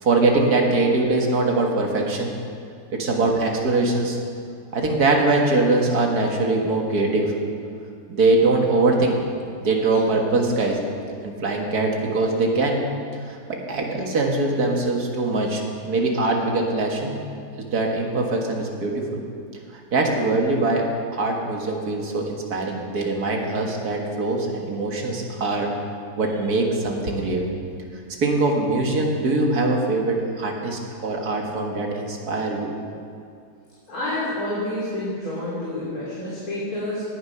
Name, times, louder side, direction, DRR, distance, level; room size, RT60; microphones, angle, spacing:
voice 1, 0.0-2.3 2.9-4.2 4.7-7.3 8.1-9.2 9.6-10.8 11.2-12.8 13.3-17.2 17.6-19.2 19.7-20.8 21.1-25.7 26.2-27.5 28.2-32.7, right 2 dB, 65° right, 1 dB, 2.2 m, -22 dB
voice 2, 33.9-37.0, left 1 dB, 60° left, -9 dB, 3.6 m, -28 dB
17.5 x 9.9 x 5.7 m, 2.4 s
omnidirectional pair, 1.8 m